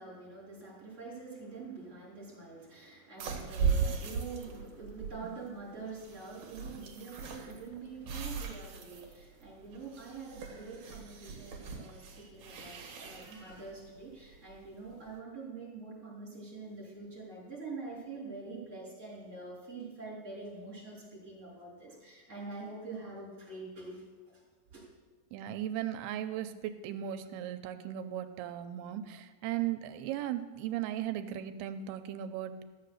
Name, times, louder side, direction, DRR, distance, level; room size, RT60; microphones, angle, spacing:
voice 1, 0.0-24.4 24.7-24.8, right 3 dB, 20° right, -7 dB, 4.9 m, -45 dB
sound 1, 3.2-15.1, right 6 dB, 55° right, 2.4 m, -38 dB
voice 2, 25.3-32.6, right 11 dB, 85° right, 9 dB, 2.6 m, -37 dB
14.0 x 7.6 x 6.5 m, 1.3 s
omnidirectional pair, 4.6 m